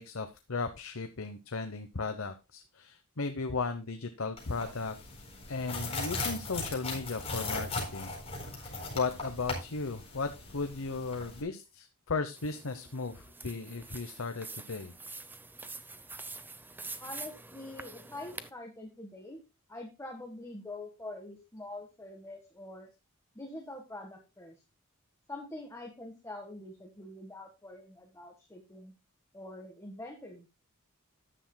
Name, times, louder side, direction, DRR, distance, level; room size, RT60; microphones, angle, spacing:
voice 1, 0.0-4.9 5.5-8.1 8.6-14.9, left 4 dB, 65° left, 8 dB, 0.9 m, -36 dB
sound 1, 4.4-11.4, left 3 dB, 30° left, 4.4 m, -38 dB
sound 2, 12.4-18.5, right 3 dB, 10° right, 0.6 m, -46 dB
voice 2, 17.0-19.4 19.7-22.9 23.3-24.6 25.3-28.9 29.3-30.5, left 2 dB, 15° left, 3 dB, 1.4 m, -45 dB
13.5 x 10.0 x 2.2 m, 0.26 s
head